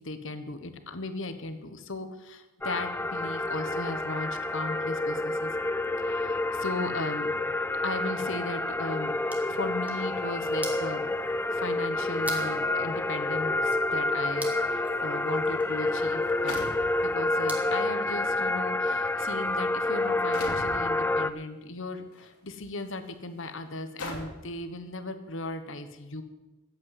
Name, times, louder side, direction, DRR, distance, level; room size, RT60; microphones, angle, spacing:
voice 1, 0.0-5.5 6.0-7.3 7.8-9.2 9.5-11.1 11.5-16.7 17.0-26.2, left 2 dB, 60° left, 9 dB, 1.3 m, -37 dB
sound 1, 2.6-21.3, left 2 dB, 10° left, 0.4 m, -29 dB
sound 2, 9.0-17.8, right 2 dB, 5° right, 1.5 m, -46 dB
sound 3, 15.4-15.5 16.5-17.3 18.2-18.3 19.1-19.3 20.3-20.8 22.1-22.3 22.9-23.0 24.0-24.5, left 2 dB, 90° left, 2.6 m, -39 dB
14.0 x 8.6 x 8.0 m, 1.1 s
head